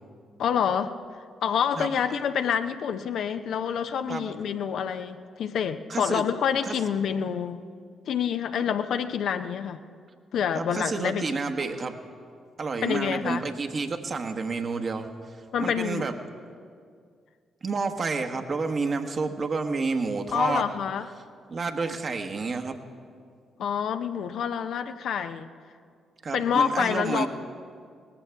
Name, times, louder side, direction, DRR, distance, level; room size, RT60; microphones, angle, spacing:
voice 1, 0.4-1.0 1.4-7.6 8.1-9.8 10.3-11.2 12.8-13.4 15.5-16.1 20.3-21.1 23.6-25.5 26.3-27.3, left 7 dB, 65° left, 9 dB, 0.6 m, -27 dB
voice 2, 1.8-2.2 4.1-4.3 5.9-6.3 6.7-6.8 10.5-12.0 12.6-15.1 15.6-16.1 17.6-20.7 21.5-22.8 26.2-27.3, right 4 dB, 50° right, 5 dB, 1.2 m, -29 dB
19.5 x 14.5 x 3.5 m, 2.2 s
hypercardioid pair, 45°, 0 cm